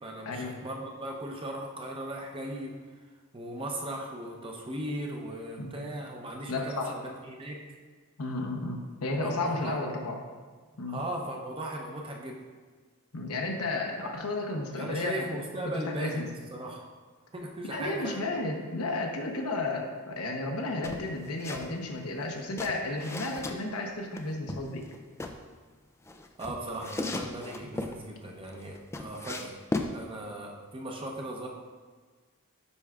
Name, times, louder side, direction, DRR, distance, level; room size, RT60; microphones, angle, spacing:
voice 1, 0.0-2.7 3.3-7.8 9.2-9.8 10.9-12.4 14.7-16.2 16.5-16.9 17.3-18.3 26.4-29.5 29.9-31.5, right 1 dB, 25° right, 0 dB, 0.7 m, -38 dB
voice 2, 6.5-6.9 8.2-10.2 10.8-11.0 13.1-16.3 17.6-24.8, left 2 dB, 75° left, 2 dB, 0.9 m, -33 dB
sound 1, 20.8-21.7 22.0-23.6 24.2-25.4 26.1-28.0 28.5-29.9, left 2 dB, 10° left, 0.3 m, -36 dB
9.6 x 4.5 x 2.4 m, 1.5 s
head